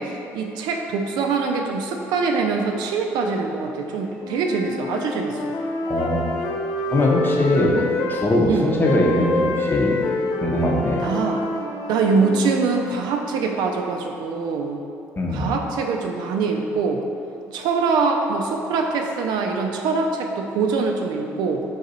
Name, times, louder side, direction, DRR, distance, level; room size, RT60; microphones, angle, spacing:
voice 1, 0.0-5.6 7.7-7.8 8.4-8.7 11.0-11.4 11.9-14.8 15.3-17.0 17.5-21.6, right 4 dB, 70° right, 2 dB, 0.4 m, -23 dB
sound 1, 4.2-8.3 8.8-13.1, left 2 dB, 70° left, 0.5 m, -27 dB
voice 2, 5.9-6.2 6.9-7.7 8.1-10.0 10.4-11.0 15.2-15.5, left 1 dB, 25° left, -2 dB, 0.8 m, -21 dB
3.9 x 2.6 x 4.1 m, 2.6 s
hypercardioid pair, 60°, 8 cm